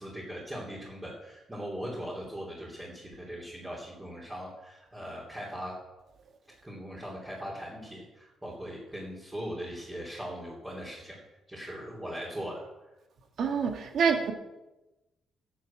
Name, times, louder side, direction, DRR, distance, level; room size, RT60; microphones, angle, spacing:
voice 1, 0.0-5.7 6.6-11.2 11.5-12.6, equal, 15° right, -5 dB, 3.4 m, -40 dB
voice 2, 13.4-14.3, right 6 dB, 65° right, 5 dB, 1.7 m, -26 dB
10.5 x 8.0 x 7.5 m, 1.0 s
cardioid pair, 90°, 0 cm